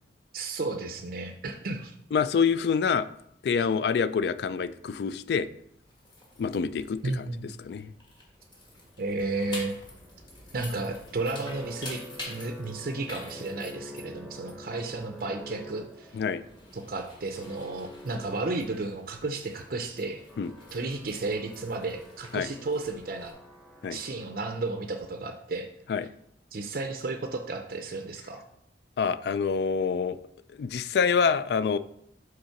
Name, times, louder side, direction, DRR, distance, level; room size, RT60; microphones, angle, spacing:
voice 1, 0.3-1.9 7.0-7.5 9.0-9.8 10.5-12.0 12.3-16.2 16.7-20.2 20.7-23.4 23.9-25.7 26.5-28.4, right 3 dB, 50° right, 5 dB, 0.5 m, -33 dB
voice 2, 2.1-3.1 3.4-5.5 6.4-7.3 7.6-7.9 16.1-16.4 20.4-20.5 22.3-22.5 23.8-24.0 25.9-26.1 29.0-30.2 30.6-31.8, left 6 dB, 60° left, 15 dB, 0.3 m, -26 dB
sound 1, 5.7-23.3, left 2 dB, 25° left, 1.4 m, -48 dB
sound 2, 8.5-24.7, equal, 5° left, 1.0 m, -48 dB
5.4 x 3.9 x 5.7 m, 0.73 s
head